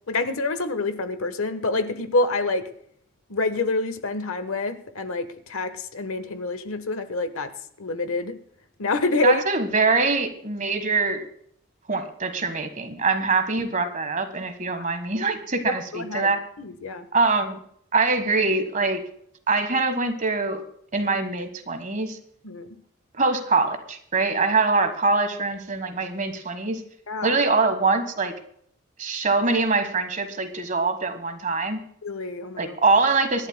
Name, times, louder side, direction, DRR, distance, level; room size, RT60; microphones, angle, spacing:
voice 1, 0.1-2.6 3.3-7.5 7.8-8.3 8.8-9.4 15.6-17.0 22.4-22.7 27.1-27.4 32.0-32.8, left 2 dB, 75° left, 11 dB, 1.2 m, -27 dB
voice 2, 9.2-11.3 11.9-16.4 17.1-17.6 17.9-19.0 19.5-20.6 20.9-22.2 23.2-26.8 27.2-28.3 29.0-31.8 32.6-33.5, right 3 dB, 35° right, 8 dB, 1.4 m, -23 dB
25.5 x 11.5 x 2.2 m, 0.65 s
head